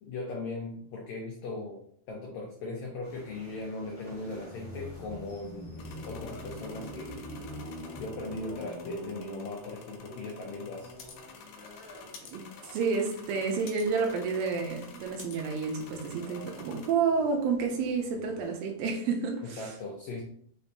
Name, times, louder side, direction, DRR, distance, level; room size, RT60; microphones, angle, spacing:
voice 1, 0.0-1.8 2.1-7.2 8.0-10.9 19.4-20.2, left 2 dB, 90° left, 1.5 m, -39 dB
sound 1, 3.0-18.5, equal, 25° left, 1.0 m, -46 dB
sound 2, 5.8-16.9, left 5 dB, 75° left, 2.0 m, -50 dB
voice 2, 12.3-19.7, right 5 dB, 80° right, 2.4 m, -30 dB
5.8 x 2.7 x 3.3 m
omnidirectional pair, 4.2 m